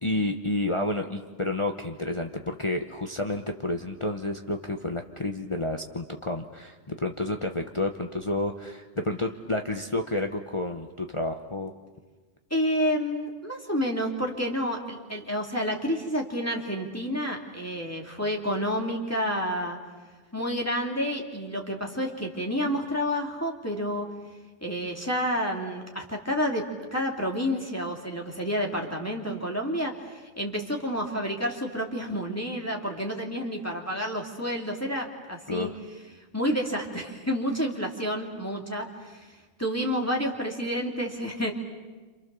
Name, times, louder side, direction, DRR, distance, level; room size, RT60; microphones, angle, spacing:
voice 1, 0.0-11.7 35.5-35.8, left 2 dB, 30° left, 3 dB, 1.1 m, -30 dB
voice 2, 12.5-19.8 20.3-24.1 24.6-26.6 26.9-35.7 36.3-41.5, equal, 15° left, 0 dB, 2.7 m, -29 dB
29.0 x 27.5 x 6.9 m, 1.3 s
omnidirectional pair, 1.1 m